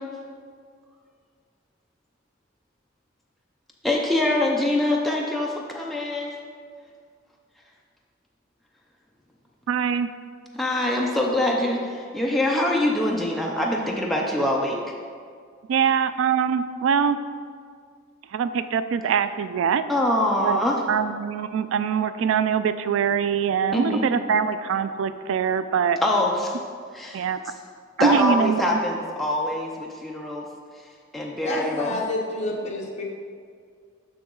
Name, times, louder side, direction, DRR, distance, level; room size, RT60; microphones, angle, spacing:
voice 1, 3.8-6.3 10.5-14.8 19.9-20.7 23.7-24.1 26.0-26.6 26.9-27.2 28.0-30.5 31.1-31.9, left 1 dB, ahead, -2 dB, 0.5 m, -24 dB
voice 2, 9.7-10.1 15.7-17.2 18.2-19.8 20.4-20.6 20.9-26.0 27.1-27.4 28.0-28.8 31.9-32.0, right 7 dB, 70° right, 11 dB, 0.3 m, -23 dB
voice 3, 31.4-33.0, left 2 dB, 35° left, -2 dB, 1.1 m, -28 dB
6.9 x 6.1 x 3.7 m, 2.1 s
head